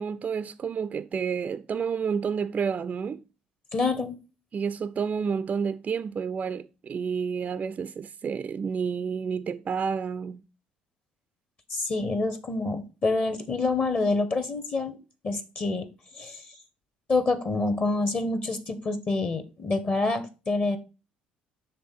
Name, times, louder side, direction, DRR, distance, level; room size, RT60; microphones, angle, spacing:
voice 1, 0.0-3.2 4.5-10.4, right 6 dB, 30° right, 0.3 m, -30 dB
voice 2, 3.7-4.2 11.7-15.0 15.2-15.9 16.1-16.4 17.1-20.8, left 3 dB, 35° left, 0.9 m, -27 dB
6.8 x 3.4 x 5.3 m
figure-of-eight pair, 55°, 5 cm